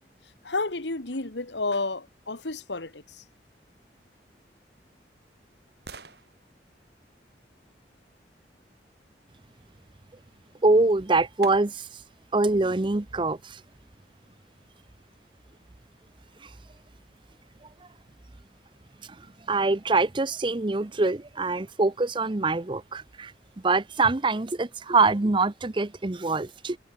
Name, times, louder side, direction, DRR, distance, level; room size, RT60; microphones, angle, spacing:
voice 1, 0.4-3.2, left 3 dB, 85° left, 2.2 m, -31 dB
sound 1, 4.5-8.4 10.5-10.6 11.4-12.1 12.6-12.7, right 3 dB, 65° right, 6.2 m, -50 dB
voice 2, 10.6-11.9 12.3-13.6 16.4-16.5 19.2-23.3 23.6-26.8, right 3 dB, 25° right, 0.7 m, -24 dB
head